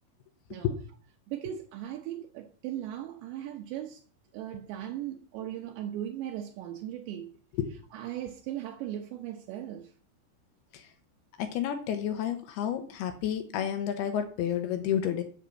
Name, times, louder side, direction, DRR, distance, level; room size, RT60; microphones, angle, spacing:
voice 1, 1.3-4.0 4.3-7.3 7.9-9.9, right 11 dB, 75° right, 3.0 m, -38 dB
voice 2, 11.4-15.2, left 9 dB, 75° left, 2.7 m, -30 dB
8.5 x 7.3 x 7.5 m
omnidirectional pair, 5.4 m